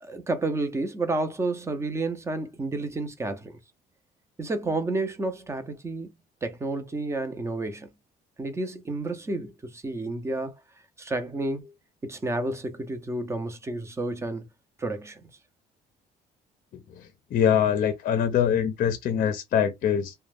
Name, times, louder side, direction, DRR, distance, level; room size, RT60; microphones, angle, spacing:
voice 1, 0.0-3.6 4.4-6.1 6.4-7.9 8.4-10.5 11.0-11.7 12.0-14.4 14.8-15.2, right 2 dB, 15° right, 0.5 m, -30 dB
voice 2, 17.0-20.1, left 8 dB, 55° left, 0.5 m, -24 dB
2.3 x 2.1 x 3.3 m
cardioid pair, 110°, 17 cm